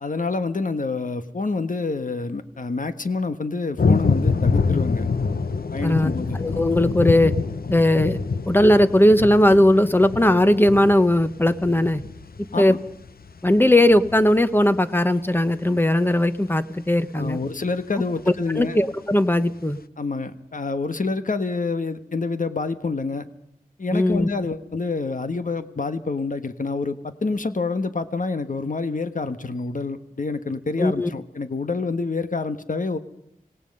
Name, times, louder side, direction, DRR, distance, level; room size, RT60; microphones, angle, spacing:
voice 1, 0.0-5.1 5.7-6.4 12.5-12.8 17.1-18.8 20.0-23.2 23.8-33.0, left 3 dB, 60° left, 9 dB, 1.4 m, -27 dB
sound 1, 3.8-15.6 18.2-18.3 18.5-18.6, left 4 dB, 90° left, 0.9 m, -26 dB
voice 2, 5.8-6.1 6.4-7.3 7.7-8.2 8.5-12.0 12.6-12.7 13.4-17.4 18.5-19.8 23.9-24.3 30.8-31.1, left 1 dB, 15° left, 11 dB, 1.2 m, -18 dB
26.5 x 18.5 x 5.5 m, 0.76 s
wide cardioid pair, 75°, 15 cm